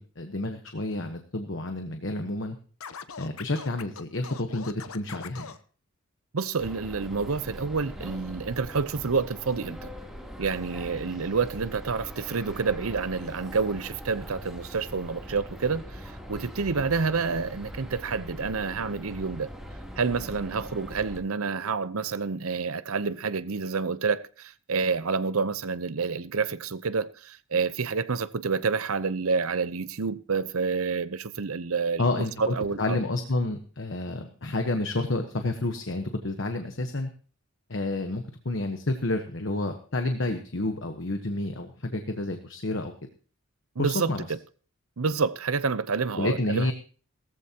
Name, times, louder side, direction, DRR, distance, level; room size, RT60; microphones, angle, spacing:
voice 1, 0.0-2.6 3.2-5.5 32.0-37.1 37.7-42.9 43.8-44.2 46.2-46.7, left 2 dB, 60° left, 1.2 m, -30 dB
Scratching (performance technique), 2.8-5.6, left 6 dB, 85° left, 0.9 m, -41 dB
voice 2, 6.3-9.9 10.4-19.5 20.0-32.0 32.4-33.0 43.8-44.4 45.0-46.7, right 5 dB, 85° right, 0.8 m, -28 dB
sound 1, 6.6-21.2, equal, ahead, 3.1 m, -41 dB
17.5 x 14.5 x 2.9 m
head